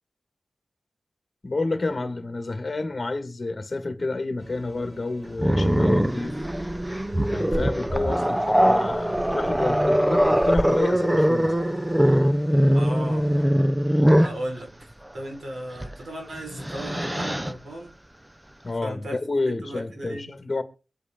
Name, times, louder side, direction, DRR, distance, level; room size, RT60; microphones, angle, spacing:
voice 1, 1.4-6.3 7.3-11.5 18.6-20.6, left 2 dB, 35° left, 1.9 m, -29 dB
sound 1, 4.4-13.4, right 1 dB, 35° right, 3.7 m, -46 dB
Growling, 5.4-14.4 15.8-16.0 16.4-17.5, equal, 10° right, 0.7 m, -22 dB
voice 2, 12.7-13.3 14.2-18.0 18.8-19.2 19.5-20.4, right 1 dB, 70° right, 4.9 m, -36 dB
24.5 x 8.3 x 3.8 m
wide cardioid pair, 90°, 0 cm